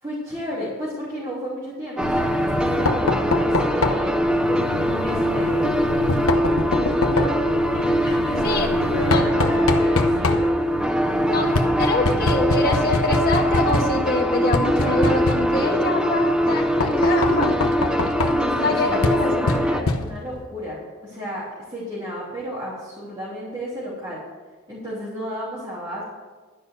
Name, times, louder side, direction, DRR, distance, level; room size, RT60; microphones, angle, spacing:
voice 1, 0.0-5.7 7.1-8.6 8.9-10.6 18.2-24.2 24.7-26.0, equal, 20° right, -9 dB, 3.0 m, -32 dB
Knock, 2.0-20.4, left 3 dB, 80° left, 0.9 m, -26 dB
sound 1, 2.0-19.8, equal, 5° right, 0.4 m, -22 dB
voice 2, 11.8-17.5 18.6-19.5, left 2 dB, 45° left, 1 dB, 1.5 m, -25 dB
12.0 x 5.4 x 8.0 m, 1.3 s
head